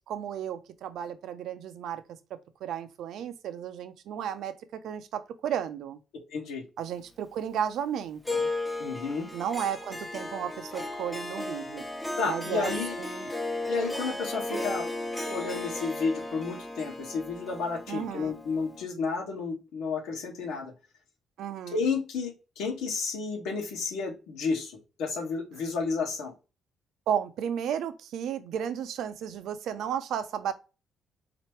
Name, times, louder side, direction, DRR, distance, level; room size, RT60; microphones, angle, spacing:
voice 1, 0.1-2.0 2.6-6.0 6.8-8.5 9.3-11.8 12.3-12.7 13.0-13.3 17.9-18.4 21.4-21.8 27.1-30.5, right 9 dB, 80° right, 0.5 m, -33 dB
voice 2, 6.3-6.6 8.8-9.3 12.2-13.0 13.7-14.9 15.2-20.7 21.7-24.7 25.0-26.3, left 4 dB, 85° left, 1.6 m, -31 dB
Harp, 8.2-18.8, left 2 dB, 5° left, 1.0 m, -35 dB
4.2 x 3.0 x 3.1 m
cardioid pair, 90°, 0 cm